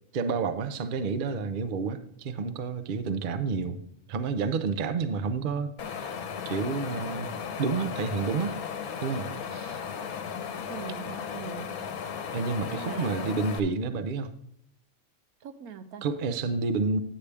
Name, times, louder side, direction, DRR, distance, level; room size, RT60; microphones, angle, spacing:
voice 1, 0.1-3.8 4.1-6.2 6.4-7.3 7.6-8.6 9.0-9.8 12.3-14.3 16.0-17.0, right 4 dB, 55° right, 0.6 m, -30 dB
Wind, 5.8-13.6, left 7 dB, 80° left, 1.2 m, -36 dB
voice 2, 10.7-11.8 12.7-13.4 15.4-16.0, right 7 dB, 80° right, 1.2 m, -41 dB
9.8 x 8.4 x 3.4 m
omnidirectional pair, 1.5 m